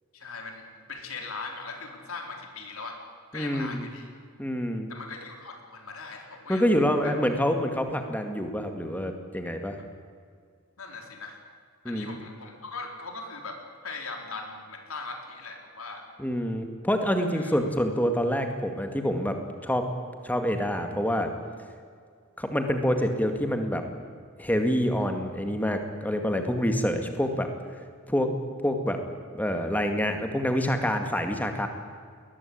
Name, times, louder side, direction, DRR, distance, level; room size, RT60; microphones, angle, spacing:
voice 1, 0.1-0.6 0.9-3.0 3.3-4.1 4.9-7.3 10.8-11.4 11.8-16.1 17.3-17.6, left 3 dB, 70° left, 3 dB, 4.1 m, -40 dB
voice 2, 3.3-3.9 4.4-4.9 6.5-9.8 11.8-12.2 16.2-19.4 19.6-19.9 20.2-21.3 22.4-23.8 24.4-27.5 28.1-28.3 28.6-29.0 29.3-31.7, equal, 5° left, 6 dB, 2.1 m, -26 dB
21.5 x 20.0 x 8.8 m, 2.1 s
head